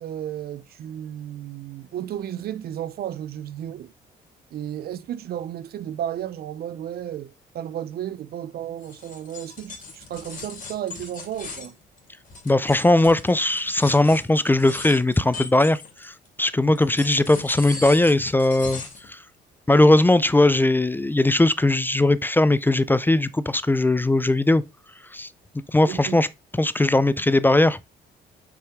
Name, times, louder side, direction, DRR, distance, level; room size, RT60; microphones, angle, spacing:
voice 1, 0.0-3.9 4.5-11.8 16.6-16.8 25.8-26.2, right 11 dB, 60° right, 0.5 m, -33 dB
sound 1, 8.8-16.3 16.8-19.1, left 4 dB, 45° left, 2.8 m, -39 dB
voice 2, 12.5-19.2 19.7-24.6 25.1-25.3 25.7-26.3 26.6-27.8, left 2 dB, 10° left, 0.4 m, -19 dB
5.9 x 4.4 x 3.6 m
cardioid pair, 80°, 18 cm